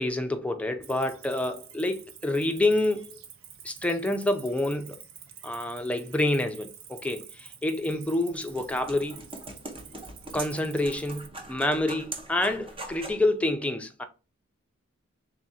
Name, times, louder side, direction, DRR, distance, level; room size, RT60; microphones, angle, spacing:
voice 1, 0.0-3.2 3.6-5.0 5.4-9.2 10.3-14.0, left 1 dB, 5° left, 0.4 m, -28 dB
Cricket, 0.8-11.3, right 8 dB, 85° right, 0.6 m, -48 dB
sound 1, 8.1-13.3, right 2 dB, 25° right, 0.7 m, -42 dB
3.6 x 2.5 x 4.1 m
head